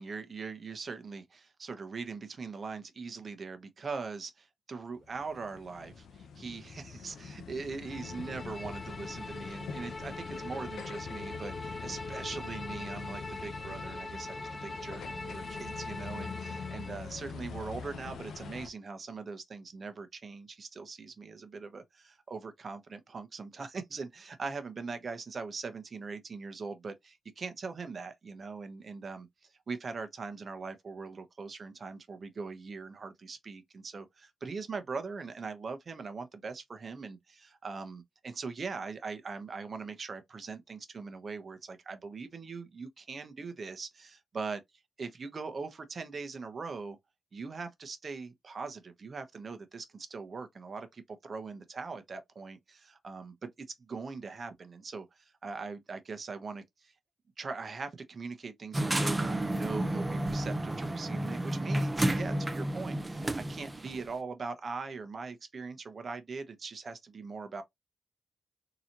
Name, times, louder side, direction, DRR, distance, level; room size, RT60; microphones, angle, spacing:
voice 1, 0.0-44.6 45.0-47.0 47.3-56.9 57.4-67.6, right 4 dB, 45° right, 0.9 m, -41 dB
sound 1, 5.0-18.7, left 5 dB, 90° left, 0.7 m, -44 dB
Bowed string instrument, 7.9-17.0, left 2 dB, 30° left, 0.6 m, -42 dB
sound 2, 58.7-64.0, right 1 dB, 15° right, 0.6 m, -31 dB
3.9 x 2.9 x 2.8 m
wide cardioid pair, 115°, 0 cm